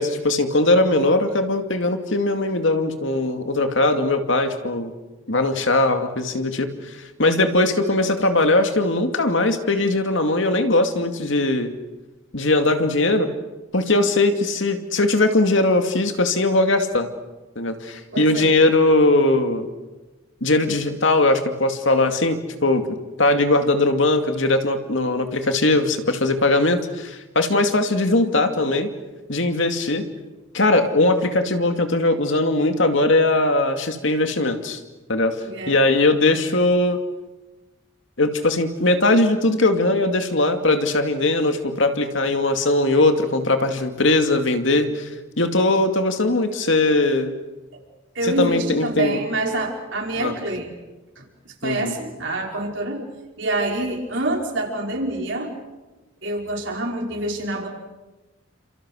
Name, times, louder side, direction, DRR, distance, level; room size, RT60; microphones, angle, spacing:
voice 1, 0.0-4.9 5.3-6.7 6.9-11.8 12.3-13.3 13.7-17.1 17.6-19.7 20.4-22.9 23.2-28.9 29.3-30.0 30.5-34.8 35.1-35.4 35.7-37.0 38.2-45.1 45.4-47.3 48.2-49.2 50.2-50.3 51.6-51.9, left 2 dB, 65° left, 6 dB, 2.4 m, -20 dB
voice 2, 18.1-18.5 20.6-20.7 35.4-35.8 47.7-47.8 48.2-50.7 51.2-53.0 53.4-55.5 56.2-57.7, right 2 dB, 65° right, 0 dB, 5.5 m, -26 dB
30.0 x 27.0 x 6.4 m, 1.2 s
head